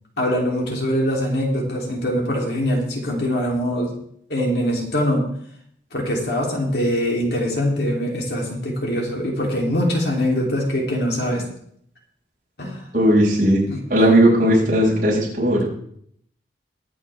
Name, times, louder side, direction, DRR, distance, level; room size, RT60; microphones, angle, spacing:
voice 1, 0.2-4.0 4.3-5.3 5.9-11.4 12.6-12.8 13.7-13.8, equal, 70° left, -1 dB, 3.4 m, -23 dB
voice 2, 12.9-13.6 13.9-15.6, right 1 dB, 50° right, -5 dB, 6.3 m, -16 dB
22.0 x 8.7 x 3.6 m, 0.67 s
head